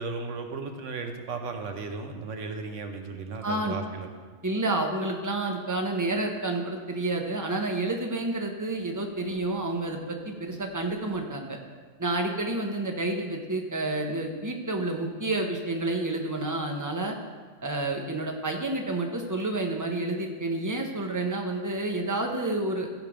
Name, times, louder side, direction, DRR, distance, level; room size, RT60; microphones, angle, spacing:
voice 1, 0.0-4.1, right 4 dB, 85° right, 5 dB, 1.3 m, -35 dB
voice 2, 3.4-3.8 4.4-11.6 12.0-17.1 17.6-22.9, right 2 dB, 15° right, 2 dB, 0.9 m, -29 dB
14.5 x 5.2 x 5.0 m, 1.5 s
omnidirectional pair, 1.2 m